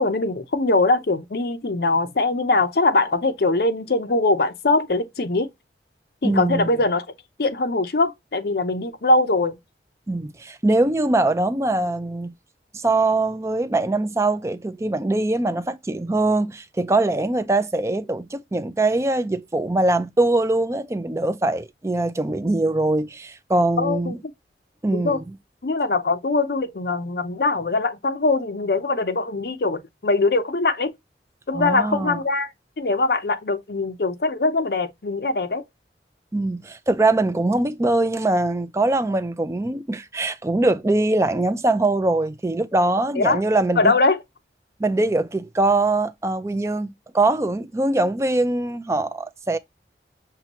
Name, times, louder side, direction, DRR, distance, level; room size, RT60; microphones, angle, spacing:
voice 1, 0.0-5.5 6.2-7.0 7.4-9.6 23.8-24.2 24.9-25.2 25.6-30.9 31.5-32.5 32.8-35.6 43.2-43.4 43.8-44.2, left 3 dB, 60° left, 0.7 m, -22 dB
voice 2, 6.2-6.7 10.1-12.3 12.7-24.2 24.8-25.3 31.5-32.2 36.3-43.9 44.8-49.6, right 2 dB, 15° right, 0.4 m, -22 dB
5.6 x 2.6 x 2.9 m
head